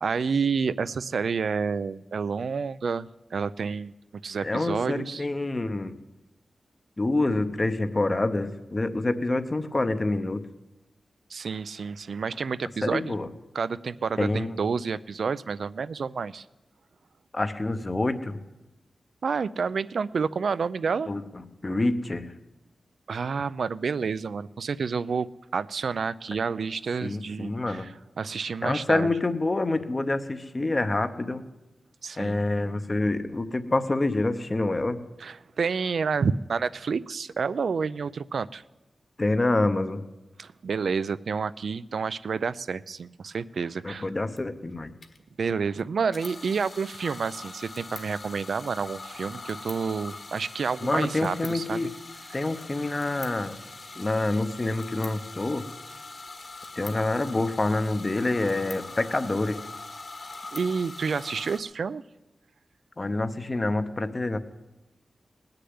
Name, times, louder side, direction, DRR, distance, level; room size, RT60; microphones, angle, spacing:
voice 1, 0.0-3.9 4.2-5.3 11.3-13.1 13.5-16.4 19.2-21.1 23.1-25.3 25.5-27.9 28.2-29.1 32.0-32.4 35.2-38.6 40.4-44.1 45.4-51.9 52.3-52.4 60.5-62.0, right 5 dB, 65° right, 17 dB, 0.4 m, -29 dB
voice 2, 4.4-6.0 7.0-10.4 12.8-13.3 14.2-14.6 17.3-18.4 21.1-22.3 27.0-27.9 28.6-31.4 32.2-35.0 39.2-40.0 43.8-44.9 50.8-51.9 52.3-53.6 54.0-55.6 56.8-59.6 63.0-64.4, left 2 dB, 25° left, 10 dB, 0.8 m, -27 dB
sound 1, 44.1-44.2 44.4-44.5 45.0-45.2 46.1-61.6, left 3 dB, 40° left, 1.4 m, -42 dB
19.5 x 6.7 x 9.5 m, 1.0 s
wide cardioid pair, 180°, 0 cm